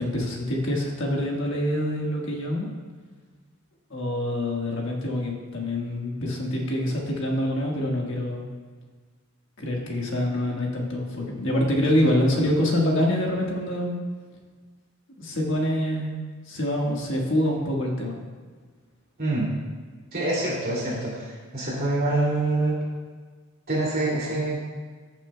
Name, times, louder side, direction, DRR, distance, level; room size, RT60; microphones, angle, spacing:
voice 1, 0.0-2.7 3.9-8.5 9.6-14.0 15.2-16.2 16.5-18.2, left 1 dB, 60° left, -1 dB, 1.5 m, -25 dB
voice 2, 20.1-22.8 23.7-24.6, right 2 dB, 45° right, -5 dB, 2.5 m, -25 dB
14.5 x 7.1 x 2.2 m, 1.5 s
head